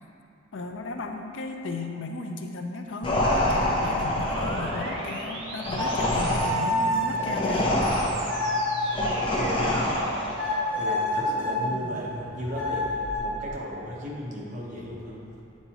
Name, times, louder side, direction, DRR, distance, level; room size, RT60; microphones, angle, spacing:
voice 1, 0.5-7.7, left 3 dB, 80° left, 4 dB, 0.5 m, -35 dB
sound 1, 3.0-10.4, left 1 dB, 25° left, 0.7 m, -26 dB
sound 2, 4.1-6.7 7.6-13.5, right 2 dB, 90° right, 0.8 m, -41 dB
sound 3, 5.6-10.0 10.4-11.6 12.5-13.2, left 1 dB, 10° left, 1.3 m, -29 dB
voice 2, 9.3-10.1 10.5-15.2, equal, 40° right, -4 dB, 1.0 m, -35 dB
8.2 x 4.3 x 2.9 m, 2.7 s
head